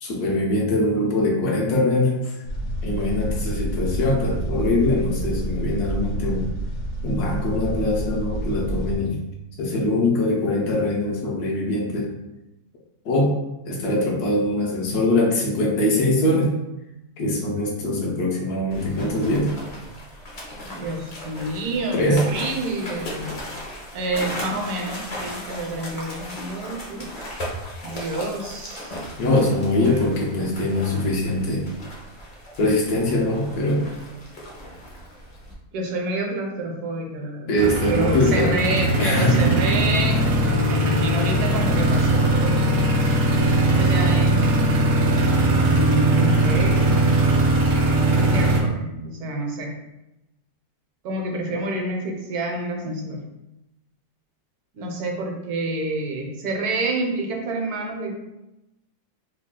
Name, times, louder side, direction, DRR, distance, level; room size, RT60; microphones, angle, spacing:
voice 1, 0.0-2.4 2.8-6.5 7.0-9.2 9.6-12.1 13.0-13.4 13.6-16.5 17.2-19.5 21.9-22.3 29.2-31.7 32.6-33.9 37.5-38.5 39.0-39.4, left 1 dB, 75° left, -2 dB, 1.3 m, -22 dB
sound 1, 2.4-9.0, right 1 dB, 60° left, 1.0 m, -28 dB
voice 2, 17.7-18.2 20.7-23.4 23.9-27.1 27.8-29.0 29.8-30.0 35.7-37.6 37.9-42.7 43.7-44.7 45.4-47.2 48.1-49.8 51.0-53.2 54.7-58.2, right 2 dB, 80° right, 2 dB, 1.2 m, -28 dB
sound 2, 18.7-35.5, equal, 45° left, 0.5 m, -37 dB
sound 3, 37.6-48.6, right 1 dB, 60° right, 0.7 m, -19 dB
3.3 x 2.3 x 3.6 m, 0.93 s
omnidirectional pair, 1.7 m